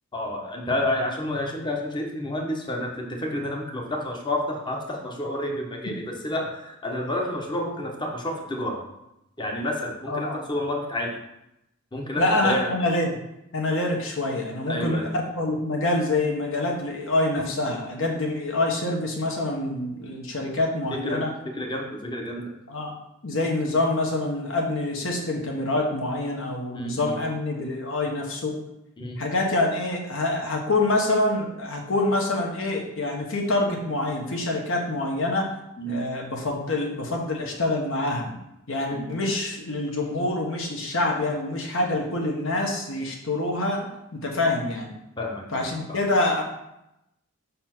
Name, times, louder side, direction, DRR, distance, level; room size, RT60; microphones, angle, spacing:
voice 1, 0.1-8.9 9.4-11.2 11.9-12.8 14.7-15.1 20.9-22.5 26.7-27.3 29.0-29.2 35.8-36.0 38.9-39.2 45.2-46.0, left 1 dB, 20° left, 1 dB, 1.0 m, -30 dB
voice 2, 12.2-13.1 13.5-21.3 22.7-22.9 23.2-28.5 29.2-35.5 35.9-38.4 38.7-43.9 44.1-44.9 45.5-46.4, left 2 dB, 65° left, 1 dB, 1.3 m, -26 dB
5.6 x 4.2 x 6.0 m, 0.86 s
head